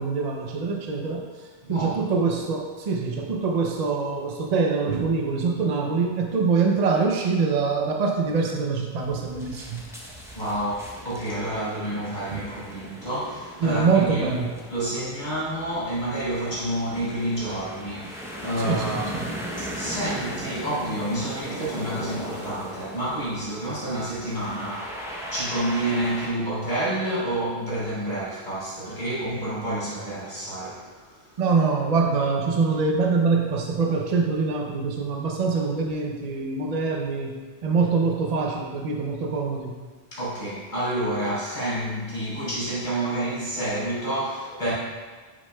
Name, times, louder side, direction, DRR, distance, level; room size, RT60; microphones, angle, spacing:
voice 1, 0.0-9.9 12.3-12.4 13.6-14.5 18.6-19.3 31.4-39.8, right 4 dB, 45° right, 1 dB, 0.6 m, -24 dB
voice 2, 1.6-2.0 10.3-14.3 14.7-19.2 19.6-31.4 40.1-44.7, right 1 dB, 45° left, -10 dB, 2.2 m, -29 dB
sound 1, 9.0-26.3, equal, 5° right, 0.6 m, -38 dB
7.7 x 6.1 x 2.2 m, 1.4 s
omnidirectional pair, 1.1 m